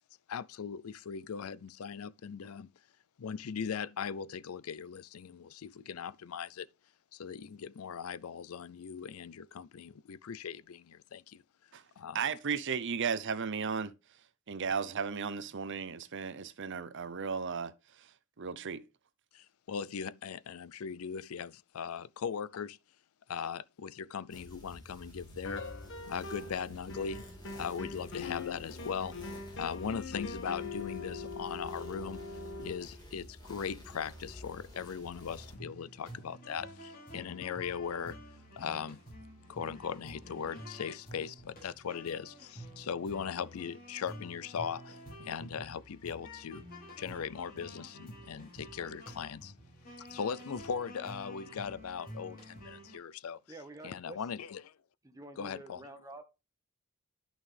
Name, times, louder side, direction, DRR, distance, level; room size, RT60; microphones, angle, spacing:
voice 1, 0.3-2.7 3.2-6.7 7.1-11.4 12.0-12.2 19.3-22.8 23.3-25.7 26.0-27.2 27.5-29.1 29.5-32.2 32.6-38.2 38.6-39.0 39.5-46.6 47.0-49.5 50.1-53.4 53.8-54.7 55.4-55.8, left 7 dB, 75° left, 0.5 m, -39 dB
voice 2, 12.1-13.9 14.5-17.7 18.0-18.1 18.4-18.8, right 6 dB, 60° right, 0.7 m, -35 dB
sound 1, 24.3-35.6, equal, 20° left, 3.6 m, -50 dB
sound 2, 25.4-26.6 26.9-32.8, left 4 dB, 60° left, 1.6 m, -42 dB
sound 3, 35.3-53.0, equal, 45° left, 5.2 m, -50 dB
voice 3, 53.5-54.2 55.0-56.2, right 2 dB, 15° right, 1.4 m, -48 dB
11.0 x 6.1 x 3.4 m
head